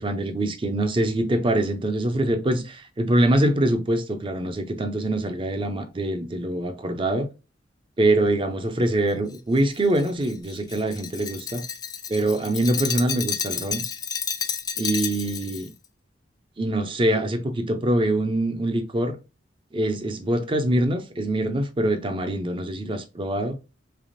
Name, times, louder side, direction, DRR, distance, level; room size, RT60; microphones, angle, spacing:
voice 1, 0.0-7.3 8.0-11.6 12.1-13.8 14.8-15.7 16.6-19.2 19.7-23.6, right 1 dB, 30° right, 0.5 m, -24 dB
Glass, 9.3-15.7, left 7 dB, 20° left, 0.3 m, -31 dB
3.4 x 3.3 x 2.6 m
head